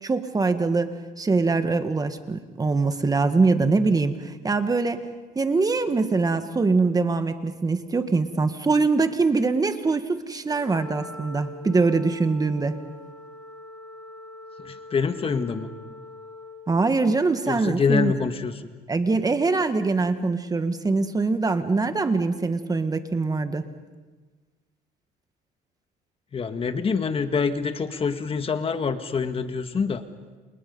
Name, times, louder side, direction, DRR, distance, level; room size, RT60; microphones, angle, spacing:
voice 1, 0.0-5.1 5.3-12.8 16.7-18.1 18.9-23.6, right 3 dB, 20° right, 9 dB, 1.5 m, -23 dB
Wind instrument woodwind instrument, 10.4-16.7, left 1 dB, 10° left, 3.7 m, -43 dB
voice 2, 14.6-15.7 17.5-18.7 26.3-30.0, left 5 dB, 35° left, 8 dB, 1.6 m, -26 dB
29.5 x 29.0 x 5.4 m, 1.3 s
cardioid pair, 110°, 17 cm